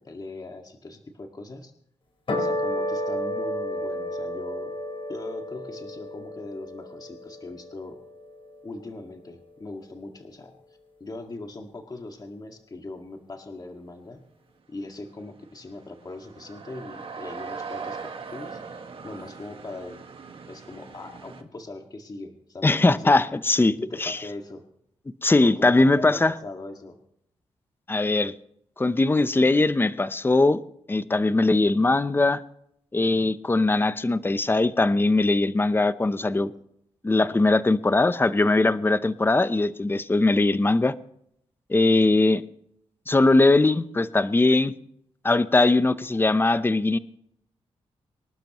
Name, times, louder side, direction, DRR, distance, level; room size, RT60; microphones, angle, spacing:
voice 1, 0.0-1.7 2.4-4.7 5.1-8.0 8.6-10.6 11.0-14.2 14.7-20.0 20.4-23.2 23.8-24.7 25.4-27.0 36.3-36.6, left 2 dB, 35° left, 3 dB, 2.0 m, -40 dB
sound 1, 2.3-8.8, left 1 dB, 55° left, 4.7 m, -32 dB
sound 2, 14.9-15.0 15.2-21.4, right 5 dB, 55° right, 1.8 m, -40 dB
voice 2, 22.6-23.7 24.0-24.2 25.2-26.3 27.9-28.3 28.8-30.6 30.9-32.4 32.9-36.5 37.0-40.9 41.7-42.4 43.1-44.7 45.2-47.0, left 2 dB, 20° left, 14 dB, 0.7 m, -20 dB
25.0 x 12.0 x 3.1 m, 0.72 s
cardioid pair, 65°, 11 cm